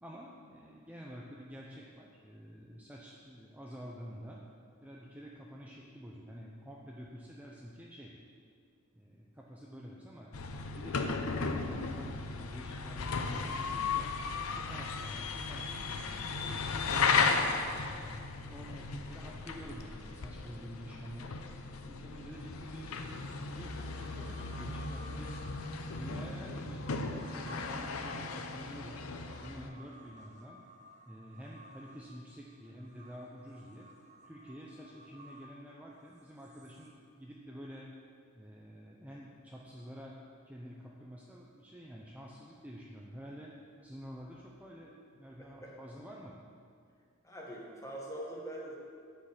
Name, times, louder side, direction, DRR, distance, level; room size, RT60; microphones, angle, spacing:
voice 1, 0.0-4.4 4.8-8.1 8.9-10.3 10.8-14.1 14.5-17.4 17.8-21.4 21.8-23.2 23.5-25.4 25.9-29.0 29.4-30.6 31.1-33.9 34.2-37.9 38.3-40.2 40.4-43.5 43.8-46.3, equal, 5° right, -3 dB, 0.7 m, -49 dB
sound 1, 10.3-29.7, left 4 dB, 85° left, 0.7 m, -35 dB
sound 2, 23.0-36.9, equal, 35° right, 1.1 m, -57 dB
voice 2, 45.4-45.7 47.2-48.8, right 1 dB, 15° left, -3 dB, 1.7 m, -43 dB
10.5 x 5.4 x 7.3 m, 2.2 s
head